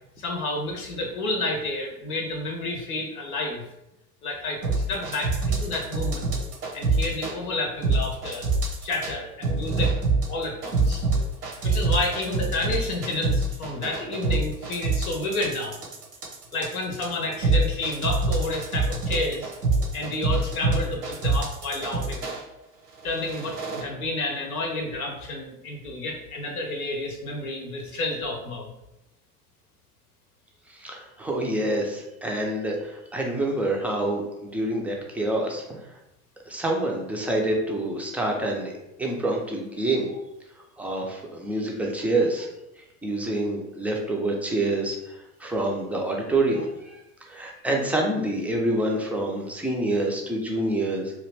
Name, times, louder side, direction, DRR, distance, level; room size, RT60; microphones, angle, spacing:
voice 1, 0.2-3.6 4.2-6.3 6.7-8.5 8.8-9.9 10.3-11.0 11.6-15.8 16.5-19.5 19.9-22.3 23.0-28.7, left 2 dB, 65° left, 1 dB, 0.8 m, -30 dB
sound 1, 4.6-7.3 7.8-9.1 9.4-22.4 23.0-23.8, right 3 dB, 85° right, 0.9 m, -25 dB
voice 2, 30.7-35.6 36.4-38.7 39.0-40.1 40.8-42.5 43.0-47.0 47.3-51.1, right 1 dB, 5° right, -1 dB, 0.4 m, -27 dB
2.9 x 2.4 x 3.3 m, 0.91 s
figure-of-eight pair, 70°, 47 cm